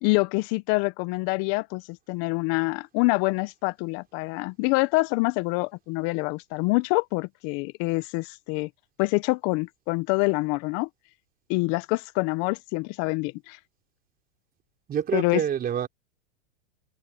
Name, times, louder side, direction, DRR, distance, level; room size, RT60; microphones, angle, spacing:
voice 1, 0.0-8.7 9.0-10.9 11.5-13.6 15.1-15.4, left 25 dB, 50° left, 1.1 m, -26 dB
voice 2, 14.9-15.9, right 9 dB, 30° right, 4.2 m, -27 dB
hypercardioid pair, 115°, 32 cm